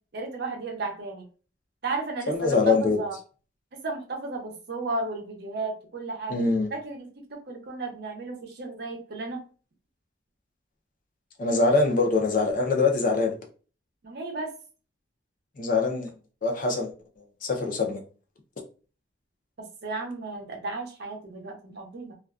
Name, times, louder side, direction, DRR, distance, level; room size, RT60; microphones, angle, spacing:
voice 1, 0.1-1.2 1.8-3.2 3.8-6.4 6.7-9.4 14.0-14.5 19.8-22.2, right 3 dB, 55° right, 0.6 m, -34 dB
voice 2, 2.3-3.0 6.3-6.7 11.4-13.3 15.6-16.1 16.4-16.9 17.4-18.0, left 3 dB, 45° left, 0.5 m, -23 dB
2.4 x 2.2 x 2.3 m
head